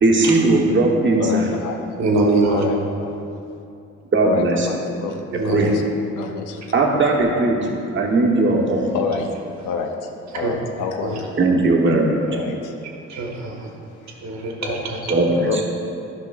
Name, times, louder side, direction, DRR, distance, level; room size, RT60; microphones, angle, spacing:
voice 1, 0.0-1.5 4.1-4.7 5.5-5.7 6.7-7.6 7.9-8.9 11.4-12.2 15.1-15.6, right 2 dB, 40° right, -1 dB, 1.1 m, -18 dB
voice 2, 1.2-1.8 2.5-3.1 4.2-5.8 6.1-6.7 8.9-9.3 9.6-9.9 10.3-11.3 12.3-12.7 14.6-15.1 15.4-15.6, left 5 dB, 85° left, 3 dB, 0.7 m, -28 dB
voice 3, 2.0-2.6 5.3-5.7 10.4-10.5 11.0-11.1 13.1-13.7 14.2-15.0, right 3 dB, 65° right, 0 dB, 1.2 m, -22 dB
10.5 x 5.8 x 2.4 m, 2.6 s
cardioid pair, 90°, 30 cm